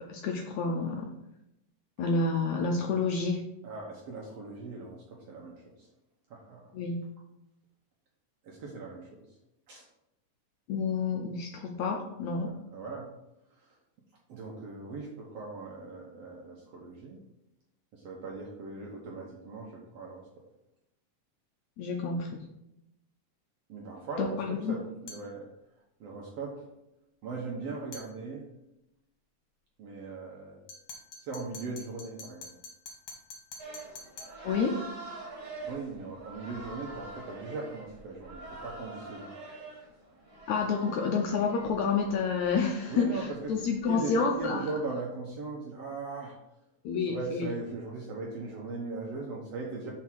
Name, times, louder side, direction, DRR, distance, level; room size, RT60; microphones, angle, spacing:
voice 1, 0.1-1.1 2.0-3.4 6.7-7.0 10.7-12.5 21.8-22.4 24.2-24.8 34.4-34.8 40.5-44.7 46.8-47.5, left 4 dB, 75° left, 2 dB, 1.7 m, -29 dB
voice 2, 3.6-5.9 6.3-6.7 8.4-9.2 9.7-9.9 12.4-13.1 13.5-13.8 14.3-17.2 17.9-20.3 23.7-24.4 24.7-25.5 26.0-26.7 27.2-28.5 29.8-30.6 31.2-32.5 35.6-39.3 42.9-43.6 43.8-46.4 47.1-49.9, right 3 dB, 65° right, -2 dB, 1.7 m, -39 dB
sound 1, 25.1-25.3 27.9-28.1 30.7-34.4, left 3 dB, 60° left, 2.1 m, -46 dB
sound 2, 33.6-44.4, right 2 dB, 35° right, 2.2 m, -46 dB
6.0 x 4.6 x 6.0 m, 0.87 s
omnidirectional pair, 3.9 m